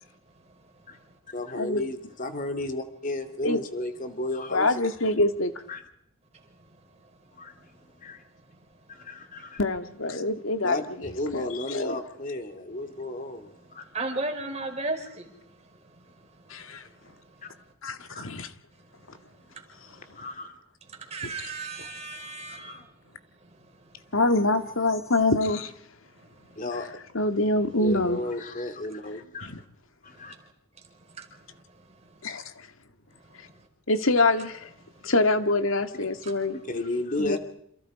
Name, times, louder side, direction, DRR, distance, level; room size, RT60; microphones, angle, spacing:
voice 1, 1.3-4.8 5.7-5.8 7.3-7.5 8.0-8.2 8.9-9.6 10.6-13.8 17.4-17.5 18.1-18.3 20.2-20.6 22.5-22.9 26.6-26.9 27.8-29.6 30.0-30.3 36.5-37.4, left 2 dB, 40° left, 6 dB, 2.6 m, -33 dB
voice 2, 4.5-5.5 9.6-12.0 16.5-16.8 17.8-18.5 24.1-25.7 27.1-28.2 29.4-29.6 32.2-32.7 33.9-34.7 35.0-36.5 37.2-37.4, left 2 dB, 70° left, 8 dB, 2.2 m, -25 dB
voice 3, 13.9-15.3 21.1-22.8, right 2 dB, 30° right, 3 dB, 5.2 m, -33 dB
28.5 x 28.0 x 5.1 m, 0.72 s
head